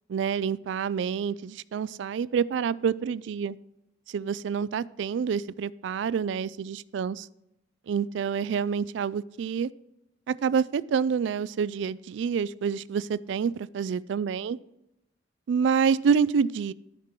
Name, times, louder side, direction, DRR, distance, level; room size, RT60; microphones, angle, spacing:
voice 1, 0.1-3.6 4.1-7.3 7.9-9.7 10.3-14.6 15.5-16.7, right 6 dB, 70° right, 0.3 m, -27 dB
12.0 x 5.2 x 4.5 m
head